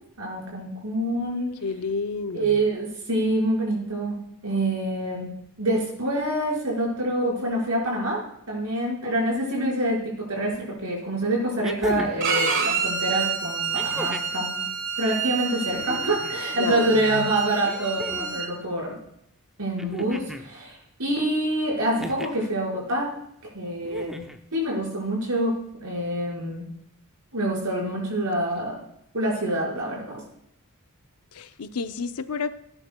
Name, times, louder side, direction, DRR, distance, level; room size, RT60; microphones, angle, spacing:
voice 1, 0.2-1.5 2.3-4.2 4.4-5.3 5.6-8.2 8.5-14.6 15.0-19.0 19.6-23.1 23.5-24.2 24.5-25.5 25.8-26.7 27.3-28.8 29.1-30.2, right 1 dB, 85° right, -3 dB, 5.2 m, -26 dB
voice 2, 1.6-2.6 16.5-17.3 31.3-32.5, left 5 dB, 90° left, 10 dB, 0.6 m, -30 dB
sound 1, 10.5-10.6 11.6-12.3 13.7-14.4 15.7-16.4 17.6-18.4 19.8-20.5 22.0-22.5 23.8-24.4 25.7-25.8, equal, ahead, 0.6 m, -36 dB
Bowed string instrument, 12.2-18.5, right 5 dB, 60° right, 1.3 m, -28 dB
17.5 x 9.8 x 2.3 m, 0.74 s
head